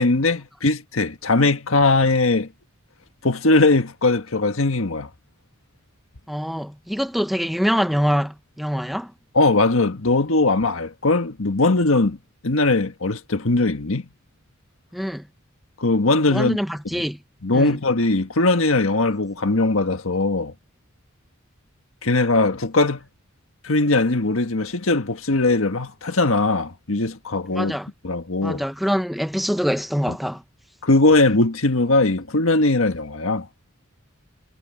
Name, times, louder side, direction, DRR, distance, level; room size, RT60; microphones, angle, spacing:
voice 1, 0.0-2.5 3.2-5.1 9.4-12.2 12.4-14.1 15.8-16.6 16.9-17.0 17.4-20.5 22.0-23.0 23.6-27.8 28.0-28.6 30.1-30.2 30.8-33.5, left 2 dB, 75° left, 1.6 m, -20 dB
voice 2, 6.3-9.1 14.9-15.3 16.3-17.2 17.5-17.8 27.5-27.9 28.4-30.4, equal, ahead, 1.0 m, -24 dB
head